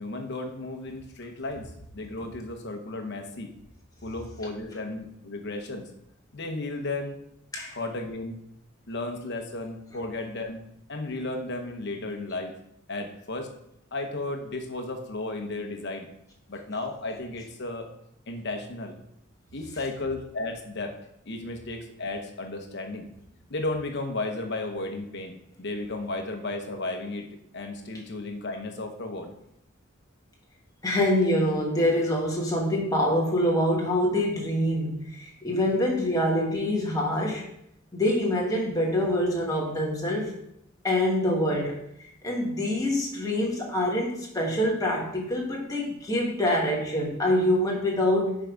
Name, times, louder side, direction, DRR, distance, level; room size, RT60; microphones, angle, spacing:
voice 1, 0.0-3.5 4.0-5.9 6.3-7.2 7.6-8.4 8.9-10.6 10.9-12.5 12.9-13.5 13.9-16.1 16.5-17.9 18.3-19.0 19.5-21.0 21.3-23.1 23.5-27.3 27.5-29.3, left 2 dB, 55° left, 5 dB, 1.0 m, -34 dB
voice 2, 30.8-37.5 37.9-40.4 40.8-41.8 42.2-48.4, left 1 dB, 20° left, -2 dB, 1.4 m, -25 dB
5.8 x 4.6 x 5.0 m, 0.77 s
head